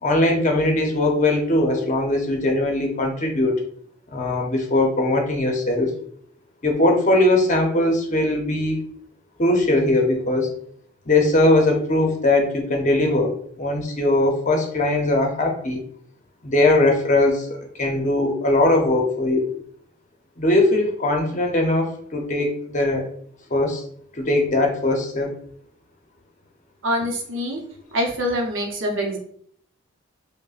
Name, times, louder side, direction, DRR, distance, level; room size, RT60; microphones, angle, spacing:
voice 1, 0.0-3.6 4.1-5.9 6.6-8.8 9.4-10.6 11.1-15.8 16.4-19.5 20.4-23.1 23.5-23.8 24.1-25.3, left 2 dB, 40° left, 2 dB, 0.7 m, -20 dB
voice 2, 26.8-27.6 27.9-29.2, equal, 65° right, 1 dB, 0.8 m, -24 dB
5.1 x 2.1 x 2.4 m, 0.63 s
head